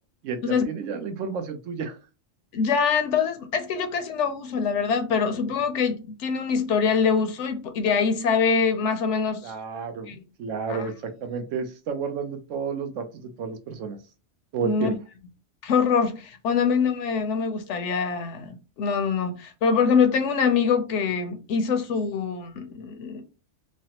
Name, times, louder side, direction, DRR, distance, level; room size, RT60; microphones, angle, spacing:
voice 1, 0.2-2.0 9.4-14.0 14.5-15.0, right 5 dB, 85° right, 1.0 m, -31 dB
voice 2, 2.5-9.5 10.1-10.2 10.7-10.9 14.6-15.0 15.6-23.2, left 6 dB, 75° left, 0.9 m, -24 dB
3.2 x 2.0 x 2.8 m
omnidirectional pair, 1.3 m